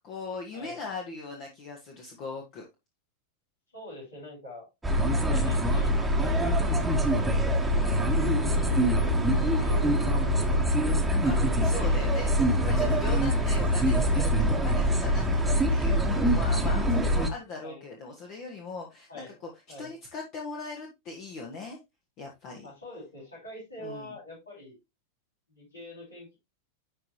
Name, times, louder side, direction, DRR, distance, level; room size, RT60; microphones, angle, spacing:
voice 1, 0.0-2.6 5.2-5.5 8.5-8.9 11.2-19.1 19.8-21.8 22.2-22.7 23.8-24.1, left 3 dB, 40° left, 2 dB, 1.5 m, -40 dB
voice 2, 3.7-4.7 5.2-8.0 8.5-11.0 11.6-12.3 13.3-13.5 17.6-17.8 19.1-19.9 22.6-24.8 25.5-26.4, left 1 dB, 75° left, -5 dB, 4.7 m, -46 dB
sound 1, 4.8-17.3, equal, 5° right, 1.4 m, -24 dB
sound 2, 7.7-11.5 11.7-11.8 13.5-14.3, right 1 dB, 80° right, 1.6 m, -39 dB
10.5 x 4.1 x 3.1 m, 0.22 s
figure-of-eight pair, 90°, 0 cm